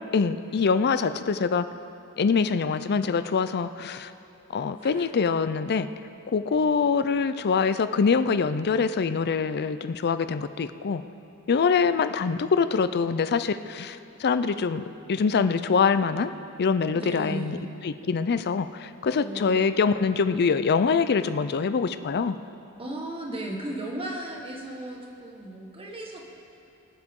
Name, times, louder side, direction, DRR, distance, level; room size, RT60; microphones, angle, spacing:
voice 1, 0.1-1.7 2.2-4.1 4.5-5.9 6.3-11.0 11.5-16.3 16.6-17.6 17.8-22.4, left 5 dB, 45° left, 12 dB, 0.5 m, -24 dB
voice 2, 4.8-5.1 16.9-17.7 19.1-19.8 22.8-26.4, right 1 dB, 25° right, 0 dB, 1.6 m, -36 dB
23.5 x 7.9 x 3.8 m, 2.6 s
head